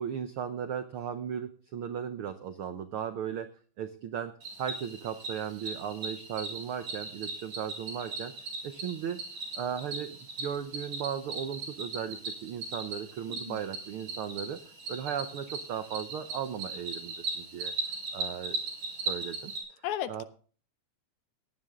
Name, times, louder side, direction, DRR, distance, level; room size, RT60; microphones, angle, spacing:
voice 1, 0.0-3.5 3.8-4.3 4.6-8.3 8.6-9.2 9.5-14.6 14.9-17.7 18.1-18.6 19.1-19.5 20.1-20.2, right 8 dB, 75° right, 1.2 m, -36 dB
Cricket, 4.4-19.6, right 3 dB, 60° right, 4.8 m, -38 dB
voice 2, 13.3-13.6 19.8-20.2, left 12 dB, 75° left, 2.0 m, -35 dB
17.5 x 9.7 x 3.7 m
omnidirectional pair, 3.6 m